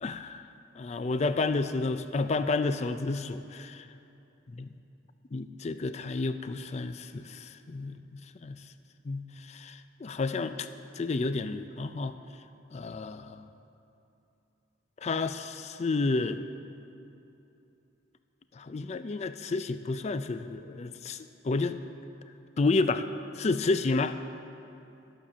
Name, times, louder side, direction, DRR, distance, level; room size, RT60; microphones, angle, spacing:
voice 1, 0.0-0.4 0.8-3.9 4.6-4.7 5.3-8.6 9.1-10.7 10.9-12.2 12.7-13.5 15.0-16.4 18.6-21.8 22.6-23.1 23.4-24.2, left 3 dB, 35° left, 11 dB, 0.4 m, -30 dB
12.0 x 7.1 x 6.0 m, 2.9 s
head